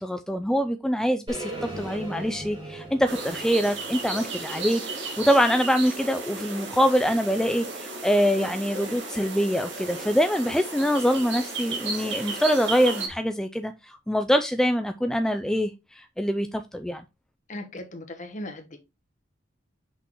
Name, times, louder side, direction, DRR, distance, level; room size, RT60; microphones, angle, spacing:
voice 1, 0.0-17.0, equal, 5° left, 0.3 m, -24 dB
sound 1, 1.3-5.3, right 2 dB, 25° right, 3.2 m, -39 dB
sound 2, 3.1-13.1, right 3 dB, 65° right, 1.7 m, -34 dB
voice 2, 17.5-18.8, left 1 dB, 40° left, 1.3 m, -37 dB
6.0 x 5.8 x 3.0 m
head